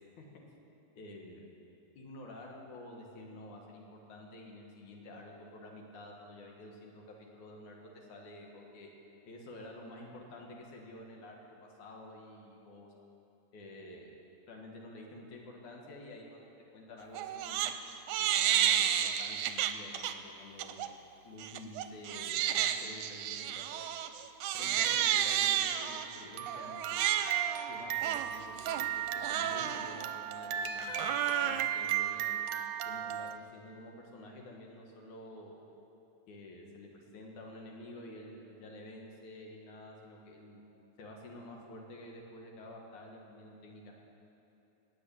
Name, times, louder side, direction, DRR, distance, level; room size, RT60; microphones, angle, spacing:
voice 1, 0.9-1.4 2.0-8.9 9.3-11.4 11.8-12.9 13.5-14.1 14.5-16.4 16.7-17.6 18.2-18.9 19.2-21.0 21.2-23.8 24.5-27.3 27.7-28.9 29.3-32.4 32.9-35.6 36.3-40.6 41.0-43.9, left 1 dB, 75° left, 0 dB, 3.2 m, -50 dB
Crying sobbing, 17.1-17.7 18.1-20.1 20.6-20.9 21.4-33.4, right 10 dB, 85° right, 2.1 m, -32 dB
18.0 x 7.0 x 9.3 m, 2.9 s
omnidirectional pair, 3.5 m